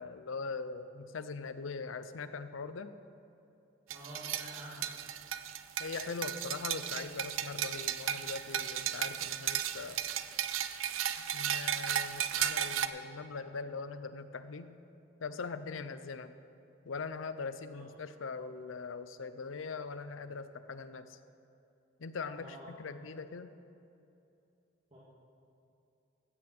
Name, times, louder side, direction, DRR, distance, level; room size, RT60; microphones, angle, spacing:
voice 1, 0.0-2.9 5.8-10.0 11.3-14.7 15.2-16.3 16.8-21.2 22.0-23.5, left 4 dB, 80° left, 11 dB, 0.6 m, -41 dB
voice 2, 3.9-4.9 17.7-17.8 22.3-22.7 24.9-25.0, equal, 30° right, -8 dB, 2.1 m, -48 dB
sound 1, 3.9-12.9, right 10 dB, 85° right, 0.5 m, -35 dB
15.5 x 7.7 x 6.0 m, 2.7 s
head